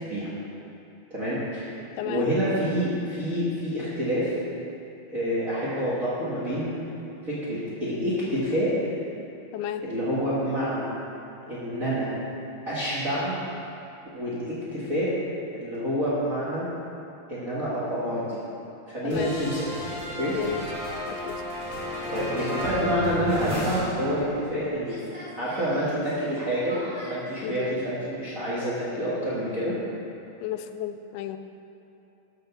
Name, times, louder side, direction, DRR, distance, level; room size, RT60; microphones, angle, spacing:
voice 1, 1.1-1.8 2.0-4.3 5.1-6.7 7.2-9.0 9.8-10.9 11.5-12.1 12.7-13.3 14.1-15.1 15.5-16.6 17.3-18.4 18.9-19.6 20.2-20.4 22.1-25.1 25.3-26.8 27.1-29.8, equal, 70° right, -10 dB, 0.7 m, -28 dB
voice 2, 2.0-2.3 9.5-9.8 19.0-19.4 20.3-20.6 21.1-21.4 27.4-27.8 30.4-31.4, left 11 dB, 90° left, 8 dB, 2.5 m, -32 dB
sound 1, 19.1-24.6 24.8-27.2, left 1 dB, 25° right, 2.2 m, -33 dB
12.5 x 4.4 x 6.8 m, 2.9 s
omnidirectional pair, 4.4 m